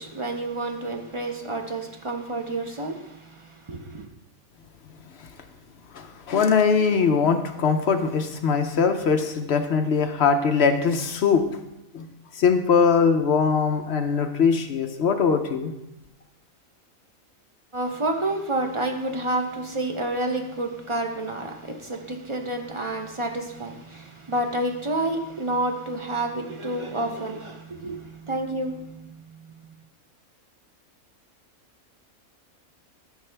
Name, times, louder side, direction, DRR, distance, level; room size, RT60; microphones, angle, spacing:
voice 1, 0.0-4.1 17.7-29.0, right 1 dB, 40° right, 3 dB, 0.4 m, -29 dB
voice 2, 5.9-11.4 11.9-12.1 12.3-15.7, left 5 dB, 60° left, 7 dB, 0.8 m, -21 dB
12.5 x 5.6 x 3.3 m, 0.91 s
omnidirectional pair, 1.5 m